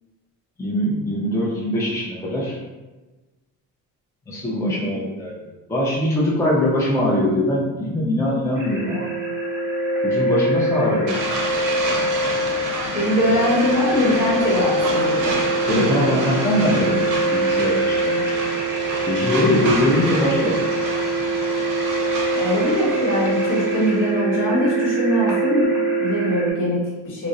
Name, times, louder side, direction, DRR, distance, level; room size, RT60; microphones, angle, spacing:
voice 1, 0.6-2.6 4.3-9.1 10.0-11.2 15.6-18.5 19.1-20.6, left 1 dB, 10° left, -5 dB, 0.4 m, -22 dB
voice 2, 4.5-4.9 12.9-15.4 15.8-16.3 22.3-27.3, left 1 dB, 50° left, -5 dB, 1.1 m, -22 dB
sound 1, 8.5-26.5, right 2 dB, 10° right, 1.0 m, -24 dB
sound 2, 11.1-24.1, right 3 dB, 55° right, 0.6 m, -29 dB
2.4 x 2.0 x 2.5 m, 1.2 s
cardioid pair, 90°, 39 cm